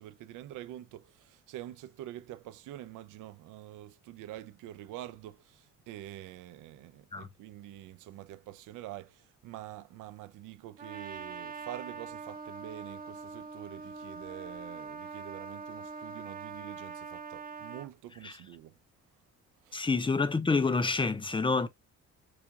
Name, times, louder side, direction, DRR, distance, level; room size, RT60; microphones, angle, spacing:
voice 1, 0.0-18.8 19.6-19.8, right 13 dB, 90° right, 0.5 m, -46 dB
Trumpet, 10.8-17.9, right 5 dB, 30° right, 0.6 m, -43 dB
voice 2, 19.7-21.7, left 4 dB, 15° left, 0.5 m, -28 dB
4.8 x 2.3 x 2.8 m
cardioid pair, 90°, 30 cm